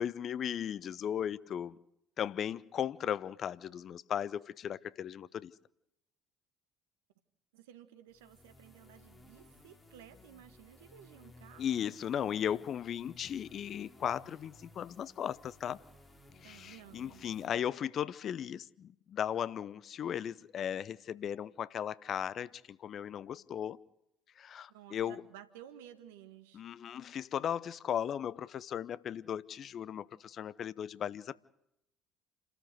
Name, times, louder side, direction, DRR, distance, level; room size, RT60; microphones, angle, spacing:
voice 1, 0.0-1.8 2.2-5.5 11.6-15.8 16.4-23.8 24.4-25.2 26.5-31.4, left 9 dB, 50° left, 19 dB, 0.7 m, -36 dB
voice 2, 7.5-12.0 16.4-17.3 24.7-26.6, right 11 dB, 75° right, 11 dB, 1.6 m, -55 dB
sound 1, 8.1-17.5, left 2 dB, 20° left, 4.6 m, -59 dB
29.5 x 13.5 x 8.0 m, 0.81 s
hypercardioid pair, 60°, 0 cm